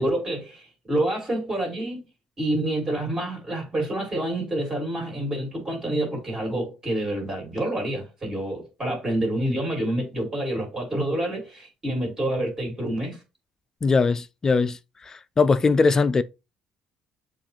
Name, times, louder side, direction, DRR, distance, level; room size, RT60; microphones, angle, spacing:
voice 1, 0.0-2.0 2.4-13.2, right 1 dB, 25° right, 2.3 m, -27 dB
voice 2, 13.8-14.8 15.1-16.2, left 4 dB, 25° left, 0.3 m, -20 dB
7.2 x 2.4 x 2.9 m
cardioid pair, 95°, 2 cm